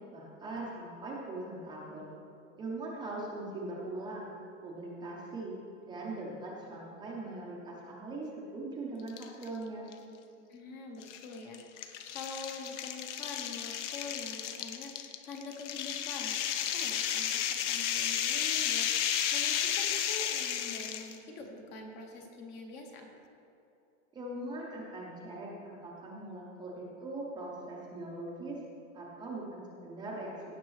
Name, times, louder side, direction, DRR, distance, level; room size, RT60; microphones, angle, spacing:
voice 1, 0.1-2.1 2.6-4.3 4.6-5.5 5.8-9.9 24.1-28.6 28.9-30.3, right 2 dB, 10° right, -4 dB, 0.7 m, -41 dB
sound 1, 9.1-9.5 9.9-10.0 11.0-21.2, left 9 dB, 65° left, 0.8 m, -33 dB
voice 2, 10.5-23.1, left 3 dB, 25° left, 2 dB, 0.8 m, -45 dB
16.0 x 6.5 x 3.2 m, 2.7 s
supercardioid pair, 170°, 39 cm